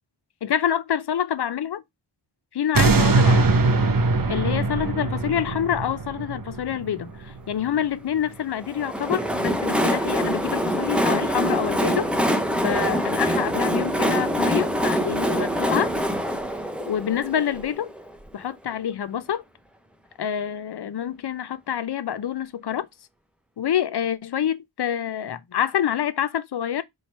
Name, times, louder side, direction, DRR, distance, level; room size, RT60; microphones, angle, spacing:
voice 1, 0.4-1.8 2.5-3.5 4.3-12.1 12.6-15.9 16.9-17.9 18.3-19.4 20.2-22.9 23.6-26.8, left 9 dB, 55° left, 0.5 m, -27 dB
sound 1, 2.7-7.9 8.3-8.4, right 3 dB, 45° right, 0.6 m, -22 dB
Train, 8.6-18.3, equal, ahead, 0.5 m, -24 dB
3.1 x 2.9 x 4.1 m
wide cardioid pair, 45°, 49 cm